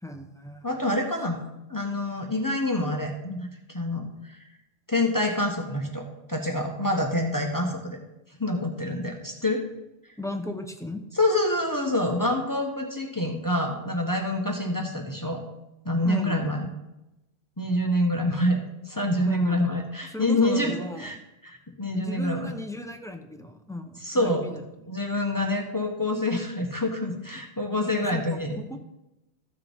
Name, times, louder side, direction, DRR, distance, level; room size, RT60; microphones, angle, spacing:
voice 1, 0.0-0.7 10.2-11.1 16.0-16.4 19.3-19.7 20.1-21.1 21.9-24.6 27.8-28.8, left 1 dB, 5° left, 5 dB, 0.7 m, -36 dB
voice 2, 0.6-1.4 1.7-3.5 3.7-4.4 4.9-8.0 8.4-9.6 11.2-15.4 15.8-16.7 17.6-18.6 18.9-21.2 21.4-22.5 24.0-24.4 24.9-28.8, left 1 dB, 20° left, 1 dB, 1.2 m, -26 dB
14.5 x 6.8 x 3.6 m, 0.93 s
omnidirectional pair, 1.1 m